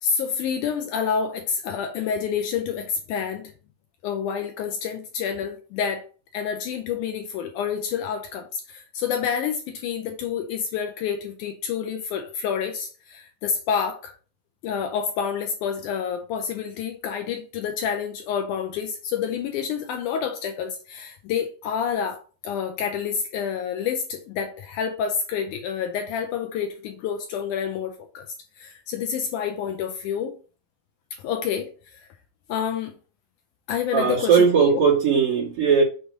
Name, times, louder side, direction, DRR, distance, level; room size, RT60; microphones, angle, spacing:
voice 1, 0.0-3.5 4.0-6.0 6.3-14.1 14.6-28.3 28.6-30.4 31.2-32.0 32.5-32.9 33.7-34.5, left 7 dB, 80° left, 2.0 m, -28 dB
voice 2, 33.9-35.8, right 6 dB, 45° right, 2.4 m, -18 dB
6.7 x 3.1 x 5.2 m
omnidirectional pair, 4.0 m